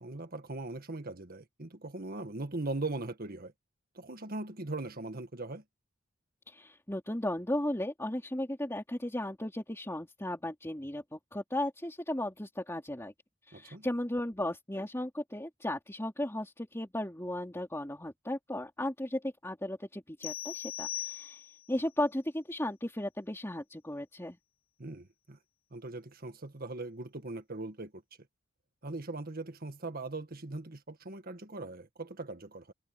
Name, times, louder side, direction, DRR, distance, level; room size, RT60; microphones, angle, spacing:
voice 1, 0.0-3.5 4.0-5.6 13.5-13.9 24.8-25.4 25.7-28.0 28.8-32.7, right 2 dB, 50° right, 1.8 m, -40 dB
voice 2, 6.5-13.1 13.5-21.4 21.7-24.4, left 1 dB, 15° left, 2.9 m, -35 dB
sound 1, 20.2-21.7, left 12 dB, 50° left, 7.2 m, -39 dB
head